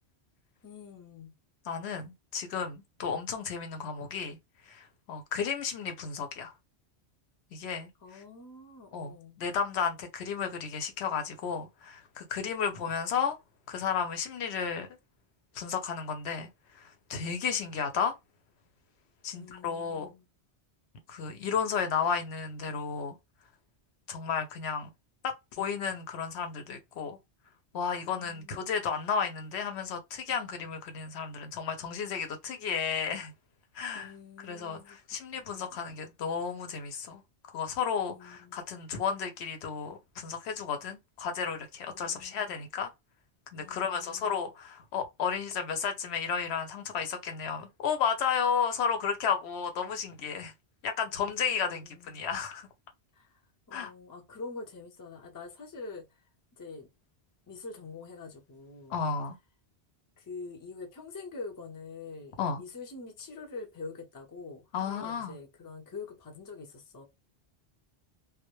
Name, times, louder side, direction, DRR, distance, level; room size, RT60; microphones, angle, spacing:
voice 1, 0.6-1.3 8.0-9.4 19.3-20.3 28.1-28.5 33.9-35.0 35.5-36.0 38.1-38.6 41.9-42.6 43.5-44.4 51.6-52.2 53.1-53.4 53.7-56.0 56.6-56.9 57.5-58.9 60.2-67.0, left 4 dB, 30° left, 0.4 m, -45 dB
voice 2, 1.7-4.4 4.7-6.5 7.5-8.2 8.9-13.4 13.7-14.9 15.5-16.5 16.8-18.1 19.2-20.1 21.1-23.1 24.1-24.9 25.2-27.2 27.7-33.3 33.7-34.1 34.4-37.2 37.5-42.9 43.5-50.5 50.8-52.7 53.7-53.9 58.9-59.4 62.4-62.6 64.7-65.4, left 6 dB, 75° left, 0.8 m, -33 dB
2.2 x 2.0 x 2.9 m
omnidirectional pair, 1.1 m